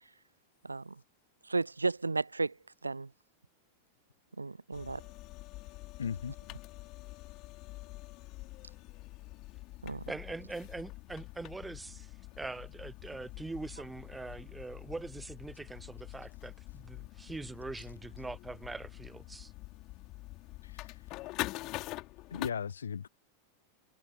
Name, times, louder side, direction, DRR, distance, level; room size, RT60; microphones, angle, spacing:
voice 1, 0.6-0.9 1.5-2.5 2.8-3.1 4.4-5.0 9.8-10.0, right 3 dB, 80° right, 0.4 m, -33 dB
sound 1, 4.7-22.5, left 20 dB, 40° left, 3.7 m, -45 dB
voice 2, 6.0-6.3 20.6-20.9 22.3-23.1, left 7 dB, 70° left, 1.0 m, -37 dB
voice 3, 10.1-19.5, right 3 dB, 10° right, 0.8 m, -43 dB
figure-of-eight pair, 90°, 0 cm